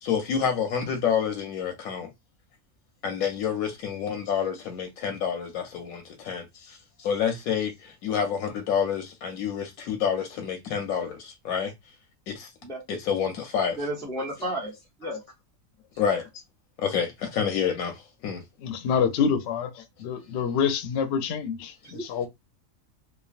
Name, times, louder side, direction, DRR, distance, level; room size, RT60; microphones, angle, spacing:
voice 1, 0.0-2.1 3.0-11.7 12.3-12.5 12.9-13.8 14.4-14.5 15.0-15.1 16.0-16.3 16.8-18.4, left 7 dB, 85° left, 1.1 m, -28 dB
voice 2, 13.8-15.2 21.8-22.0, right 1 dB, 5° left, 0.5 m, -33 dB
voice 3, 18.6-22.3, left 6 dB, 65° left, 0.7 m, -27 dB
3.1 x 2.2 x 2.4 m
omnidirectional pair, 1.5 m